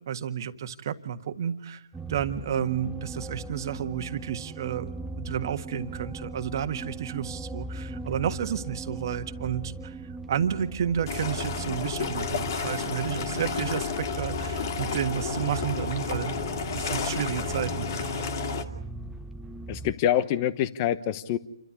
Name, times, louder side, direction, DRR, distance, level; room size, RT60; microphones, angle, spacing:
voice 1, 0.1-1.8 2.1-16.4 16.7-18.3, right 9 dB, 45° right, 8 dB, 1.6 m, -31 dB
sound 1, 1.9-19.9, right 3 dB, 5° right, 0.7 m, -39 dB
sound 2, 11.1-18.6, left 5 dB, 45° left, 2.3 m, -31 dB
voice 2, 19.7-21.4, left 11 dB, 30° left, 14 dB, 1.1 m, -26 dB
28.5 x 12.5 x 9.7 m, 0.85 s
hypercardioid pair, 145°, 3 cm